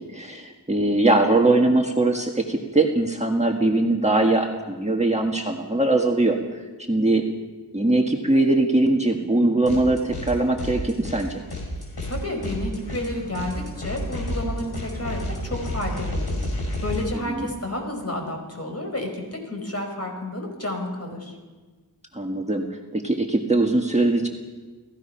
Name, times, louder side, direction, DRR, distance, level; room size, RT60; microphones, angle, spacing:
voice 1, 0.0-6.6 6.9-7.3 7.7-11.4 17.3-17.5 22.1-24.3, right 2 dB, 15° right, 1 dB, 1.8 m, -21 dB
sound 1, 9.7-10.3 10.6-17.0, left 1 dB, 70° left, 6.5 m, -31 dB
voice 2, 12.0-21.3, left 1 dB, 35° left, 3 dB, 5.0 m, -31 dB
30.0 x 18.0 x 5.8 m, 1.4 s
wide cardioid pair, 115°, 40 cm